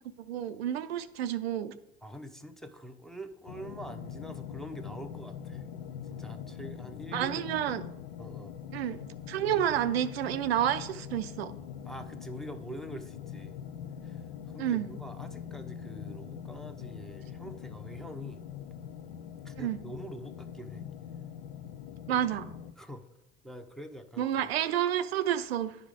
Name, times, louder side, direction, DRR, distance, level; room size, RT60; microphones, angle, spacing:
voice 1, 0.2-1.7 7.1-7.8 8.7-9.0 9.3-11.5 14.6-14.9 19.6-19.8 22.1-22.5 24.2-25.8, right 10 dB, 80° right, 12 dB, 0.5 m, -30 dB
voice 2, 2.0-5.6 6.1-7.7 8.2-8.5 11.8-13.5 14.0-18.4 19.4-20.8 22.8-23.0 23.4-24.3, equal, ahead, 5 dB, 0.7 m, -45 dB
sound 1, 3.5-22.7, left 8 dB, 75° left, 0.5 m, -43 dB
10.5 x 4.8 x 3.5 m, 0.83 s
hypercardioid pair, 60°, 31 cm